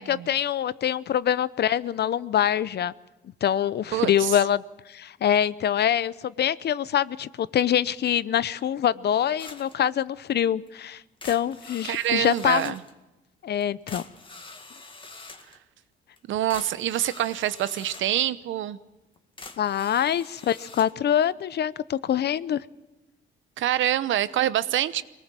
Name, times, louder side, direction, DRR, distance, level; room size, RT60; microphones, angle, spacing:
voice 1, 0.0-2.9 3.4-12.7 13.4-14.0 19.6-22.6, left 10 dB, 55° left, 17 dB, 0.7 m, -25 dB
voice 2, 3.9-4.3 11.8-12.8 16.3-18.8 23.6-25.0, right 12 dB, 75° right, 15 dB, 0.9 m, -26 dB
sound 1, 9.4-9.8 10.2-10.3 10.7-10.8 11.2-12.9 13.6-13.7 13.9-15.6 16.2-16.3 16.5-18.2 19.2-20.9, left 3 dB, 25° left, 1.9 m, -44 dB
24.0 x 19.0 x 7.5 m, 1.0 s
cardioid pair, 90°, 20 cm